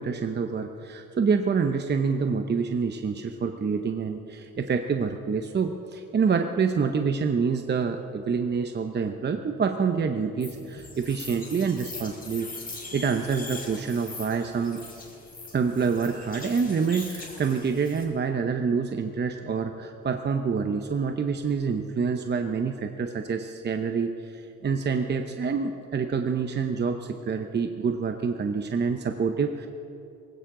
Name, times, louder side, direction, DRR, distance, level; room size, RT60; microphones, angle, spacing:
voice 1, 0.0-14.8 15.5-29.7, right 5 dB, 35° right, 6 dB, 0.8 m, -27 dB
sound 1, 10.4-18.0, left 3 dB, 30° left, 3.9 m, -42 dB
18.5 x 16.5 x 3.8 m, 2.7 s
cardioid pair, 90°, 30 cm